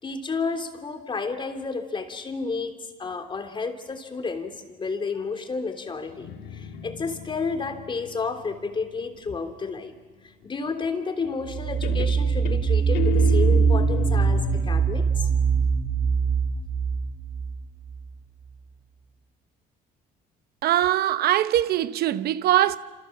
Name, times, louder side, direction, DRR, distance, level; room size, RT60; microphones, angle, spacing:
voice 1, 0.0-2.7 3.0-9.9 10.2-15.3, left 4 dB, 30° left, 3.3 m, -31 dB
Guitar, 6.1-9.7 11.2-11.6 11.8-14.8, left 10 dB, 80° left, 2.0 m, -34 dB
sound 1, 11.4-18.1, right 6 dB, 50° right, 3.3 m, -22 dB
voice 2, 20.6-22.8, right 13 dB, 70° right, 0.8 m, -22 dB
29.0 x 28.0 x 7.4 m
cardioid pair, 110°, 17 cm